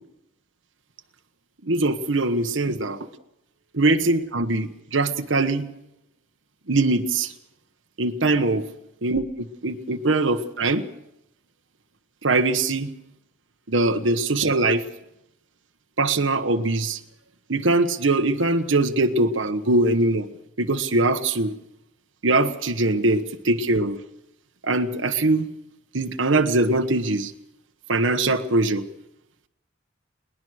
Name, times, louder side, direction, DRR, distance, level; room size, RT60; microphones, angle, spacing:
voice 1, 1.7-3.0 3.7-5.7 6.7-7.3 8.0-8.6 9.0-10.8 12.2-12.9 13.7-14.8 16.0-17.0 17.5-20.3 20.6-21.5 22.2-24.0 24.6-25.5 25.9-27.3 27.9-28.8, right 2 dB, 80° right, 5 dB, 1.3 m, -22 dB
22.0 x 19.5 x 6.5 m, 0.83 s
head